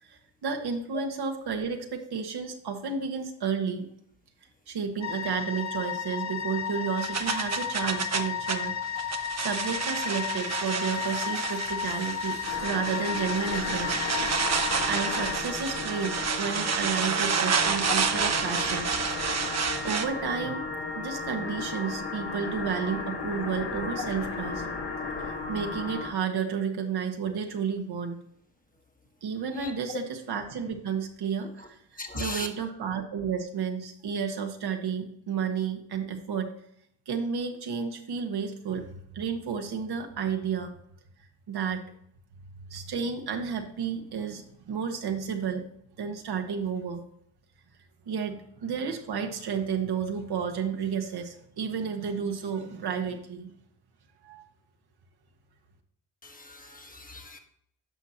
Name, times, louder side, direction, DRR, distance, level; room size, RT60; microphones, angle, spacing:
voice 1, 0.0-3.9 4.7-8.8 9.4-14.1 14.9-18.9 19.6-20.6 20.9-24.6 25.2-28.2 29.2-31.8 32.1-36.5 37.1-40.8 41.5-41.8 42.7-45.7 46.0-47.0 48.1-53.5 54.2-54.4, right 6 dB, 65° right, 4 dB, 1.5 m, -32 dB
sound 1, 5.0-15.4, left 8 dB, 40° left, 0.9 m, -33 dB
sound 2, 7.0-20.0, right 6 dB, 40° right, 1.0 m, -30 dB
sound 3, 12.4-26.2, left 4 dB, 65° left, 2.2 m, -35 dB
voice 2, 29.6-30.0 32.0-32.5 56.2-57.4, left 2 dB, 20° left, 3 dB, 1.3 m, -38 dB
11.0 x 6.2 x 2.9 m, 0.71 s
supercardioid pair, 70°, 42 cm